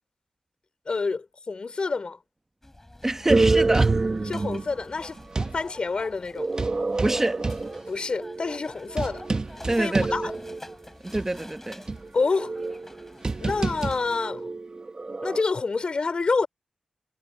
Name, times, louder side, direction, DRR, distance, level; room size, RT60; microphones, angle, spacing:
voice 1, 0.9-2.2 4.3-5.2 5.5-6.5 7.9-9.2 9.8-10.3 12.1-12.5 13.4-14.5 15.2-16.5, left 4 dB, 50° left, 3.6 m, -27 dB
sound 1, 2.6-14.2, left 1 dB, 15° left, 5.5 m, -47 dB
voice 2, 3.0-4.0 7.0-7.4 9.7-10.1 11.0-11.8, right 1 dB, 20° right, 1.3 m, -26 dB
sound 2, 3.3-5.6 6.3-10.7 11.1-11.2 11.9-15.4, right 3 dB, 35° right, 1.0 m, -27 dB
wide cardioid pair, 95°, 2 cm